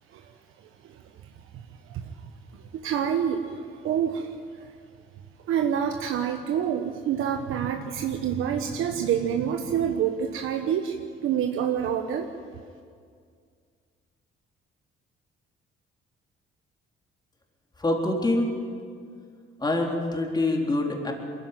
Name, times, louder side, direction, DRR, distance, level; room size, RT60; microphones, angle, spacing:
voice 1, 2.8-3.5 3.8-4.3 5.5-11.0 11.2-12.3, right 8 dB, 85° right, 4 dB, 1.2 m, -26 dB
voice 2, 17.8-18.5 19.6-21.1, left 2 dB, 20° left, 0 dB, 3.8 m, -25 dB
22.0 x 14.5 x 9.2 m, 2.1 s
cardioid pair, 90°, 21 cm